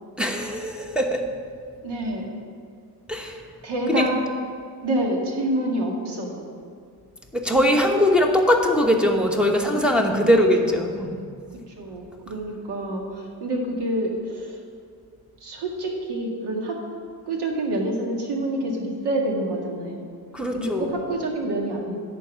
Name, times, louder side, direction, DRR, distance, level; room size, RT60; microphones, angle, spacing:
voice 1, 0.2-1.3 3.1-3.4 3.9-4.1 7.3-11.2 20.3-21.0, equal, ahead, 2 dB, 1.1 m, -21 dB
voice 2, 1.8-2.3 3.6-4.2 4.8-6.4 9.7-10.8 11.7-14.6 15.4-16.8 17.3-20.1 20.5-22.0, right 1 dB, 75° right, 0 dB, 2.0 m, -27 dB
11.0 x 4.6 x 7.5 m, 2.2 s
cardioid pair, 105°, 40 cm